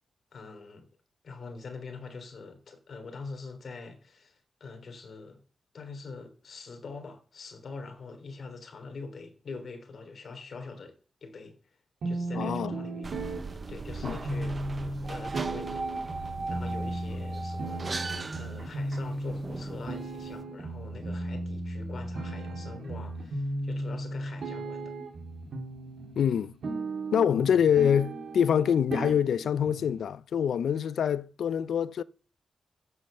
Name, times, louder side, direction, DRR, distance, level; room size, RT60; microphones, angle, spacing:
voice 1, 0.3-0.9 1.2-5.4 5.7-10.9 11.2-11.5 12.0-13.1 13.7-16.2 16.5-24.9, left 4 dB, 50° left, 3.0 m, -44 dB
sound 1, 12.0-30.0, right 2 dB, 65° right, 3.3 m, -36 dB
voice 2, 12.3-12.7 14.0-14.2 26.2-26.5 27.1-32.0, left 8 dB, 80° left, 0.5 m, -25 dB
sound 2, 13.0-20.4, right 3 dB, 30° right, 0.7 m, -38 dB
12.0 x 7.6 x 7.6 m
wide cardioid pair, 150°, 0 cm